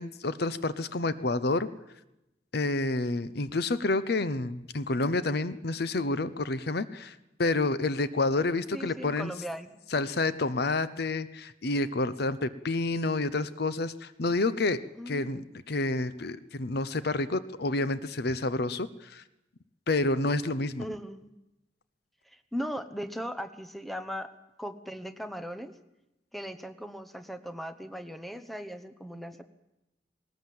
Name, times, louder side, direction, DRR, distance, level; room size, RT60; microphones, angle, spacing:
voice 1, 0.0-1.7 2.5-9.3 9.9-14.8 15.1-19.2 19.9-20.9, left 2 dB, 65° left, 15 dB, 0.8 m, -29 dB
voice 2, 8.7-9.8 15.0-15.6 20.8-21.3 22.3-24.3 24.6-25.7 26.3-29.4, equal, ahead, 9 dB, 1.0 m, -38 dB
19.0 x 18.5 x 7.7 m, 0.91 s
head